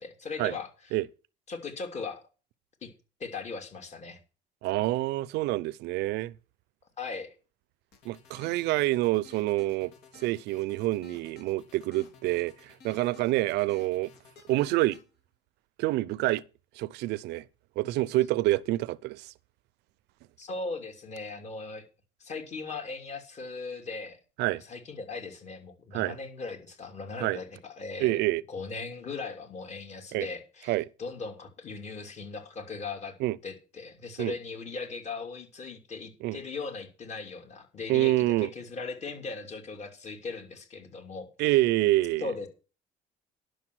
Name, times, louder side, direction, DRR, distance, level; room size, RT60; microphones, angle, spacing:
voice 1, 0.2-0.7 1.5-2.2 2.8-2.9 3.2-4.2 7.0-7.3 20.4-21.8 22.2-24.2 24.7-28.2 28.5-33.1 33.4-41.6 42.2-42.5, left 4 dB, 40° left, 2.8 m, -38 dB
voice 2, 4.6-6.3 8.0-14.1 14.5-15.0 15.8-16.4 16.8-17.5 17.8-19.3 24.4-24.6 25.9-26.1 27.2-27.4 28.0-28.4 30.1-30.3 30.7-30.9 33.2-33.4 34.2-34.3 36.2-36.4 37.9-38.5 41.4-42.3, right 17 dB, 85° right, 0.6 m, -27 dB
sound 1, 7.9-15.0, left 5 dB, 80° left, 3.7 m, -54 dB
11.0 x 6.7 x 6.1 m
cardioid pair, 110°, 17 cm